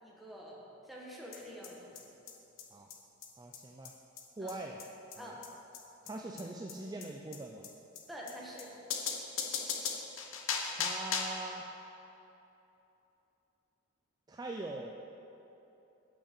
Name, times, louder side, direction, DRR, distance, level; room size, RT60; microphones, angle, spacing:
voice 1, 0.0-2.1 4.4-4.5 5.2-5.4 8.1-8.7, equal, ahead, -5 dB, 1.2 m, -47 dB
sound 1, 1.3-1.4 1.6-1.7 2.0-2.1 2.3-2.4 2.6-2.7 2.9-3.0 3.2-3.3 3.5-3.6 3.8-3.9 4.2-4.3 4.5-4.6 4.8-4.9 5.1-5.2 5.4-5.5 5.7-5.8 6.1-6.2 6.4-6.5 6.7-6.8 7.0-7.1 7.3-7.4 7.6-7.7 8.0-8.1 8.3-8.4 8.6-8.7 8.9-11.4, left 6 dB, 65° left, 0.9 m, -36 dB
voice 2, 3.4-3.9 4.4-4.8 5.2-5.3 6.0-7.7 10.7-11.6 14.3-14.9, right 2 dB, 20° right, 1 dB, 0.3 m, -42 dB
8.2 x 5.8 x 6.7 m, 3.0 s
head